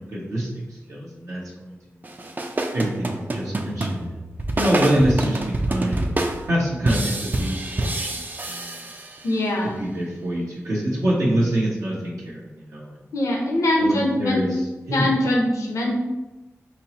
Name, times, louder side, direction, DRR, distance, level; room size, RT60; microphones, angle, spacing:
voice 1, 0.0-1.7 2.7-4.2 4.6-6.1 6.5-8.8 9.8-13.0 13.8-14.5 14.9-15.1, equal, 75° right, -6 dB, 0.9 m, -25 dB
sound 1, 2.0-9.5, right 2 dB, 35° right, 0.4 m, -27 dB
voice 2, 9.2-9.8 13.1-14.4 14.9-16.0, left 1 dB, 80° left, -1 dB, 0.7 m, -22 dB
5.1 x 2.0 x 2.9 m, 1.1 s
cardioid pair, 45°, 5 cm